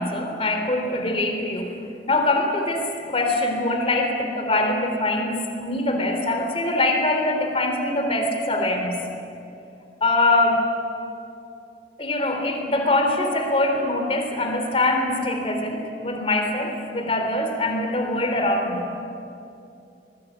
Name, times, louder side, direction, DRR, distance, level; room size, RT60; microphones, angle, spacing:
voice 1, 0.0-1.7 2.1-9.0 10.0-10.6 12.0-18.9, left 2 dB, 35° left, 4 dB, 3.5 m, -23 dB
25.5 x 20.5 x 8.6 m, 2.6 s
head